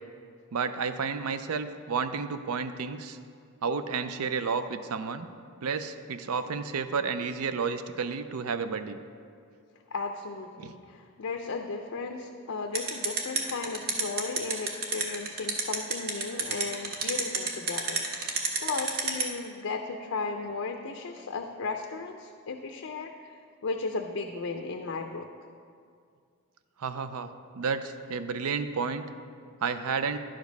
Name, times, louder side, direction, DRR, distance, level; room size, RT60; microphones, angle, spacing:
voice 1, 0.5-3.2 3.6-5.3 5.6-9.0 10.6-10.7 26.8-27.3 27.5-29.0 29.6-30.2, right 5 dB, 85° right, 11 dB, 0.5 m, -31 dB
voice 2, 9.9-18.0 18.6-23.3 23.6-25.3, left 4 dB, 65° left, 4 dB, 0.5 m, -35 dB
sound 1, 12.7-19.2, right 5 dB, 45° right, 0.9 m, -28 dB
10.5 x 5.1 x 5.3 m, 2.2 s
head